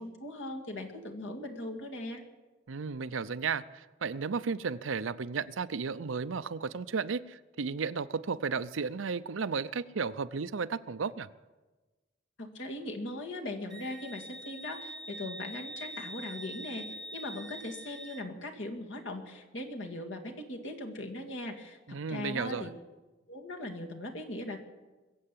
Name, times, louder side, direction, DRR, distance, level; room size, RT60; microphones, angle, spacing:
voice 1, 0.0-2.2 12.4-16.9 17.1-22.7 23.3-24.6, left 1 dB, 70° left, 2 dB, 2.2 m, -39 dB
voice 2, 2.7-11.3 21.9-22.7, right 5 dB, 85° right, 14 dB, 0.6 m, -34 dB
Wind instrument woodwind instrument, 13.7-18.3, right 1 dB, ahead, 1.0 m, -44 dB
22.0 x 7.8 x 8.4 m, 1.2 s
head